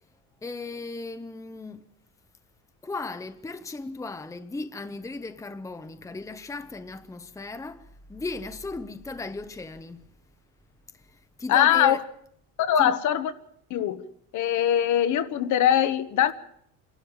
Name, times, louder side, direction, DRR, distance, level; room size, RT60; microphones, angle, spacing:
voice 1, 0.4-1.9 2.8-10.0 10.9-12.0 12.8-13.0, left 3 dB, 10° left, 0.9 m, -36 dB
voice 2, 11.5-12.0 12.6-13.3 13.7-14.0 14.3-16.3, left 10 dB, 55° left, 1.4 m, -22 dB
26.0 x 12.5 x 8.9 m
cardioid pair, 115°, 36 cm